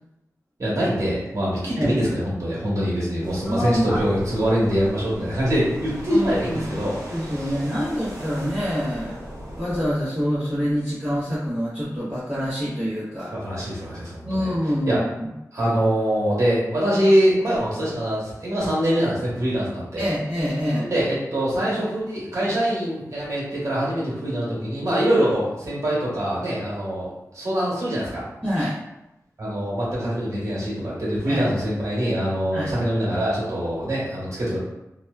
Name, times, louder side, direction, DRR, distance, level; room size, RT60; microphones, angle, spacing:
voice 1, 0.6-7.0 7.3-7.5 13.3-14.5 14.8-15.0 15.5-20.0 20.8-28.2 29.4-34.6, equal, 55° right, -7 dB, 1.1 m, -24 dB
sound 1, 3.2-9.9, equal, 75° right, 0.8 m, -37 dB
voice 2, 3.5-4.0 6.1-6.7 7.0-9.3 9.5-13.3 14.2-15.3 20.0-20.9 28.4-28.8 31.3-31.4 32.5-32.7, equal, 15° right, -13 dB, 0.8 m, -26 dB
2.8 x 2.1 x 2.3 m, 0.90 s
wide cardioid pair, 95°, 6 cm